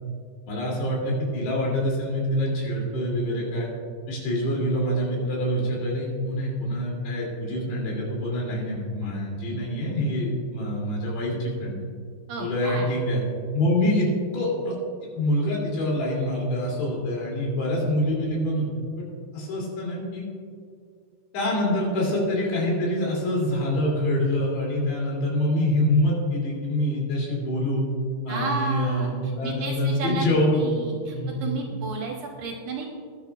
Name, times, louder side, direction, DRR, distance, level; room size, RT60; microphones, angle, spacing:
voice 1, 0.5-3.7 4.1-11.8 12.4-13.2 13.5-14.1 14.3-14.8 15.2-18.7 19.0-19.1 19.3-20.3 21.3-27.8 28.3-30.7 31.1-31.4, left 1 dB, 90° left, -3 dB, 5.1 m, -25 dB
voice 2, 12.3-13.0 28.3-32.9, right 3 dB, 65° right, 0 dB, 2.1 m, -33 dB
21.0 x 10.5 x 2.4 m, 2.2 s
omnidirectional pair, 4.8 m